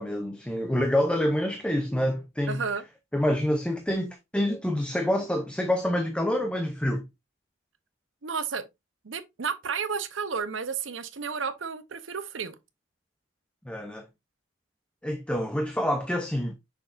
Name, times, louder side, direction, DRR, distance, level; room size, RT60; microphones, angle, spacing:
voice 1, 0.0-2.6 3.1-7.1 13.6-14.1 15.0-16.5, left 1 dB, 5° left, 0.6 m, -27 dB
voice 2, 2.5-2.8 8.2-8.6 9.0-12.5, right 5 dB, 75° right, 0.8 m, -32 dB
6.2 x 6.0 x 2.5 m
head